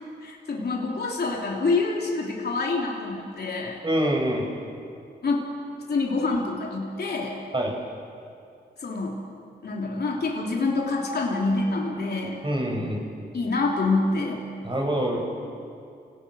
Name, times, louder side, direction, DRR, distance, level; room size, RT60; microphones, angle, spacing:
voice 1, 0.2-3.8 5.2-5.4 5.9-7.4 8.8-9.2 9.6-12.4 13.3-14.4, left 3 dB, 60° left, -1 dB, 3.4 m, -26 dB
voice 2, 3.8-4.4 7.5-7.8 12.4-13.0 14.6-15.2, right 1 dB, 25° right, 0 dB, 6.2 m, -25 dB
29.5 x 18.0 x 6.4 m, 2.4 s
cardioid pair, 75°, 19 cm